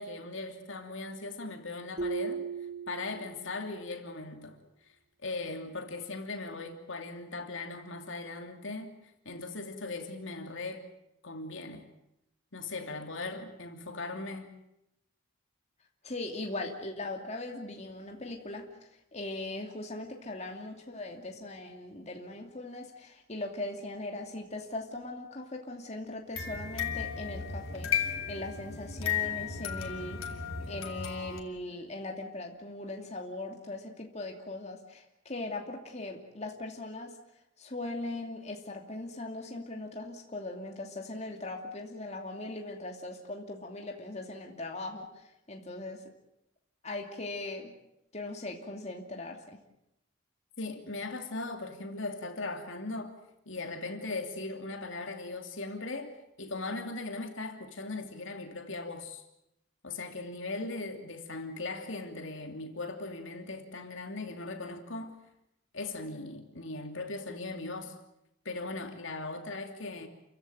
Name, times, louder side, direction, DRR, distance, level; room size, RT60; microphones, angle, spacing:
voice 1, 0.0-2.5 2.9-4.6 5.2-8.9 9.2-10.8 11.2-11.9 12.5-14.5 50.6-53.1 53.5-59.2 59.8-65.2 65.7-67.9 68.4-70.1, left 3 dB, 65° left, 5 dB, 2.9 m, -39 dB
sound 1, 2.0-3.7, right 5 dB, 50° right, 1.5 m, -37 dB
voice 2, 16.0-37.2 37.6-46.0 46.8-47.7 48.1-49.6, left 2 dB, 35° left, 2 dB, 2.7 m, -40 dB
sound 2, 26.3-31.4, left 7 dB, 90° left, 3.2 m, -34 dB
29.0 x 16.0 x 9.2 m, 0.84 s
head